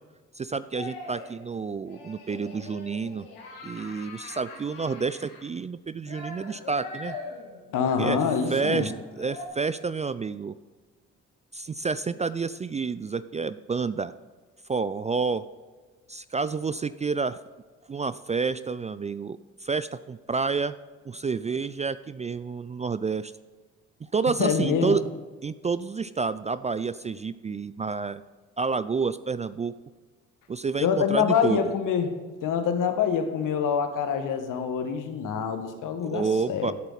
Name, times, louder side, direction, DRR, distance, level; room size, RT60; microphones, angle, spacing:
voice 1, 0.4-3.3 3.6-7.2 8.0-8.2 8.5-10.5 11.5-14.1 14.7-15.4 16.1-17.4 17.9-20.7 21.1-23.3 24.0-25.0 25.4-28.2 28.6-29.7 30.5-31.6 36.0-36.7, right 5 dB, 20° right, 15 dB, 0.4 m, -29 dB
sound 1, 0.7-1.4 1.9-5.4 6.1-9.5, left 3 dB, 80° left, 2.5 m, -42 dB
voice 2, 7.7-8.9 24.4-25.0 30.8-32.1 32.4-36.7, left 7 dB, 65° left, 7 dB, 1.5 m, -25 dB
16.0 x 8.1 x 4.1 m, 1.4 s
hypercardioid pair, 50°, 34 cm